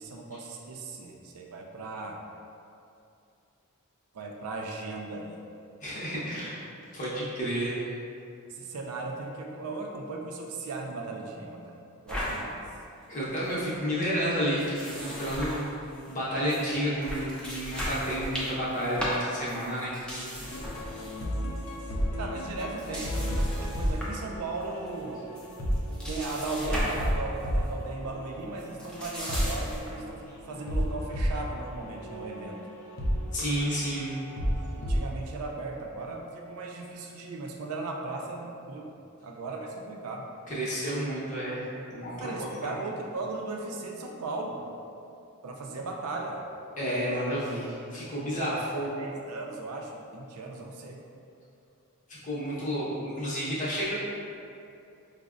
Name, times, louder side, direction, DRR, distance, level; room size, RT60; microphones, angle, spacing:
voice 1, 0.0-2.2 4.1-5.4 6.1-6.3 8.5-11.8 12.0-12.6 22.2-25.3 26.1-32.6 34.7-38.9 39.2-40.3 42.2-44.7 45.4-46.4 47.1-47.2 48.4-51.0, right 3 dB, 75° right, 1 dB, 0.4 m, -37 dB
voice 2, 5.8-6.7 6.9-7.8 13.1-15.7 16.1-20.7 33.3-34.1 40.5-41.6 41.9-42.3 42.6-42.7 46.8-49.0 52.1-53.9, equal, 35° left, -8 dB, 0.7 m, -31 dB
sound 1, 12.1-12.4 12.8-12.9 13.1-13.5 14.6-16.2 16.5-16.6 17.0-21.3 21.6-21.8 22.6-24.2 24.6-25.0 25.3-27.1 27.4-27.7 28.6-30.0, equal, 5° left, 0.4 m, -36 dB
sound 2, 20.4-35.0, equal, 65° left, 0.5 m, -33 dB
5.0 x 2.0 x 2.4 m, 2.6 s
head